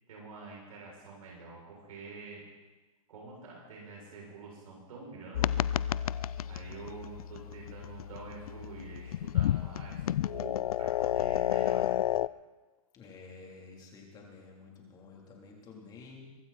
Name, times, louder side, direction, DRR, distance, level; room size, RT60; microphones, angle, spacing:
voice 1, 0.1-2.4 3.1-5.6 6.4-12.0, right 3 dB, 70° right, -3 dB, 7.2 m, -47 dB
sound 1, 5.3-12.3, left 12 dB, 75° left, 0.5 m, -31 dB
voice 2, 12.9-16.3, left 4 dB, 20° left, -1 dB, 3.6 m, -51 dB
23.0 x 13.5 x 4.4 m, 1.2 s
hypercardioid pair, 145°, 19 cm